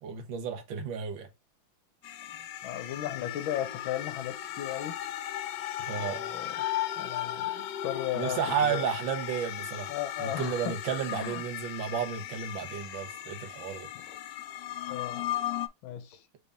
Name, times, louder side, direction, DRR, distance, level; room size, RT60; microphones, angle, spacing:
voice 1, 0.0-1.3 5.9-6.3 8.2-9.9 10.2-13.9, right 7 dB, 75° right, 1.8 m, -32 dB
sound 1, 2.0-15.7, left 12 dB, 70° left, 1.2 m, -36 dB
voice 2, 2.6-5.0 5.9-6.6 7.0-8.8 9.9-10.8 11.1-11.4 13.1-13.3 13.9-14.2 14.9-15.2 15.8-16.2, left 11 dB, 85° left, 1.6 m, -36 dB
5.9 x 3.5 x 2.5 m
omnidirectional pair, 2.1 m